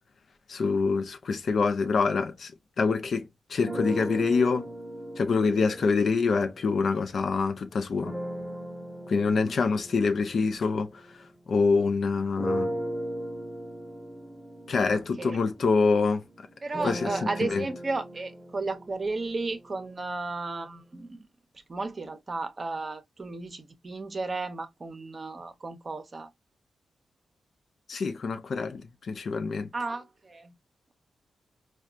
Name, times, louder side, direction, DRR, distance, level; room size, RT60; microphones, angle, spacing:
voice 1, 0.5-2.5 2.8-4.7 5.2-8.1 9.1-12.7 14.7-16.2 16.8-17.7 27.9-29.7, left 4 dB, 65° left, 0.5 m, -26 dB
sound 1, 3.6-7.2 8.0-11.8 12.4-20.3, right 1 dB, ahead, 1.0 m, -38 dB
voice 2, 14.9-15.4 16.6-21.2 21.7-26.3 29.7-30.5, right 3 dB, 35° right, 0.7 m, -34 dB
4.2 x 2.2 x 2.3 m
cardioid pair, 100°, 0 cm